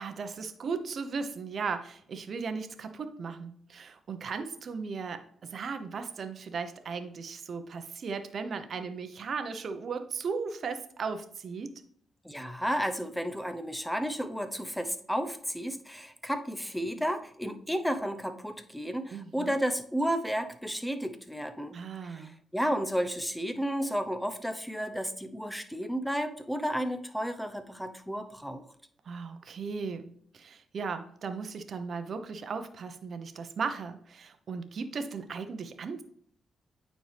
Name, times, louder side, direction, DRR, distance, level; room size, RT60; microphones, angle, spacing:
voice 1, 0.0-11.8 19.1-19.5 21.7-22.4 29.0-36.0, right 5 dB, 60° right, 9 dB, 0.8 m, -37 dB
voice 2, 12.2-28.6, equal, ahead, 8 dB, 0.9 m, -32 dB
9.2 x 4.4 x 3.4 m, 0.64 s
cardioid pair, 75°, 0 cm